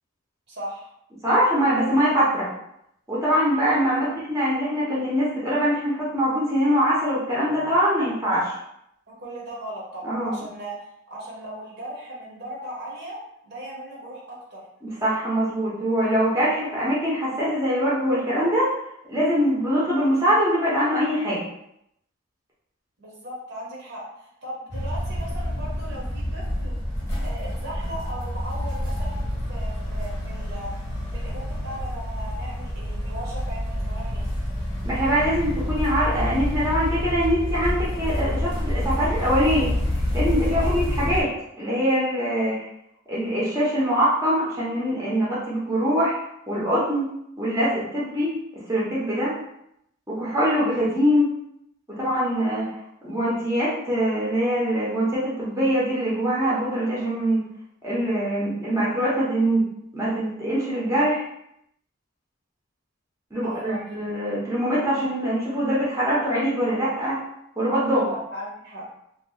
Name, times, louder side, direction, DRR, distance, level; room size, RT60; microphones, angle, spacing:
voice 1, 0.5-0.9 3.9-4.1 9.1-10.7 11.1-13.2 13.4-14.6 23.0-26.8 27.2-29.2 29.5-30.7 31.1-34.3 40.5-40.8 42.3-42.5 63.4-63.8 68.1-68.8, right 1 dB, 55° right, -4 dB, 1.0 m, -37 dB
voice 2, 1.2-2.5 3.1-8.6 10.0-10.5 14.8-18.7 19.1-21.4 34.8-39.7 40.1-41.3 41.6-42.5 43.1-46.1 46.5-47.1 47.4-48.4 48.7-49.4 50.1-51.3 51.9-52.7 53.0-57.4 57.8-59.7 59.9-61.2 63.3-67.2 67.6-68.1, equal, 15° right, -8 dB, 0.8 m, -23 dB
sound 1, 24.7-41.2, left 1 dB, 15° left, 1.1 m, -28 dB
2.9 x 2.4 x 3.8 m, 0.78 s
head